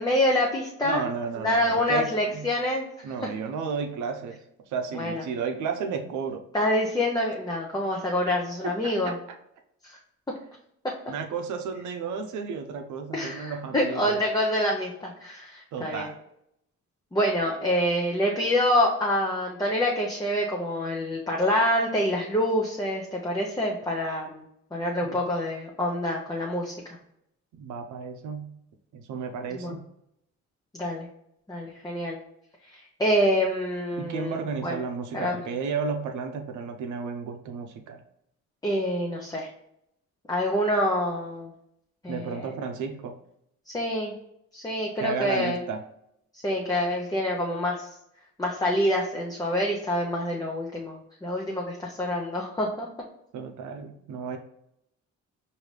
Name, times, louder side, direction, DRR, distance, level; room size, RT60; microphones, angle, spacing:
voice 1, 0.0-1.0 1.4-2.9 3.2-3.3 4.9-5.2 6.5-9.1 13.1-16.1 17.1-24.4 24.7-26.7 29.5-29.8 30.7-31.1 31.5-32.2 32.7-34.8 35.1-35.4 38.6-39.5 40.3-41.5 42.0-42.4 43.7-44.1 44.5-45.6 46.4-47.9 48.4-52.9, left 1 dB, 10° left, -2 dB, 0.6 m, -26 dB
voice 2, 0.8-2.5 3.0-4.4 4.7-6.4 8.6-9.4 11.1-14.2 15.7-16.2 25.0-25.2 27.5-28.6 28.9-29.9 34.0-38.0 42.1-43.2 45.0-45.9 53.3-54.4, right 5 dB, 75° right, 5 dB, 0.6 m, -33 dB
4.7 x 2.7 x 3.2 m, 0.76 s
cardioid pair, 90°, 30 cm